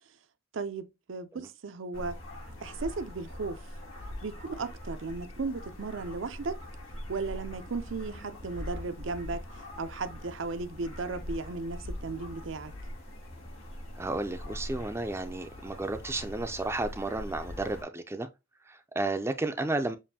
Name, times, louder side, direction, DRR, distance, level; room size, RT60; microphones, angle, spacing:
voice 1, 0.5-2.2 2.6-3.6 4.2-6.6 7.1-9.4 9.8-12.7, right 4 dB, 80° right, 0.6 m, -35 dB
sound 1, 1.9-17.8, left 1 dB, 90° left, 2.4 m, -42 dB
voice 2, 13.9-18.3 18.7-20.0, right 2 dB, 15° right, 0.4 m, -32 dB
7.2 x 2.6 x 2.7 m
head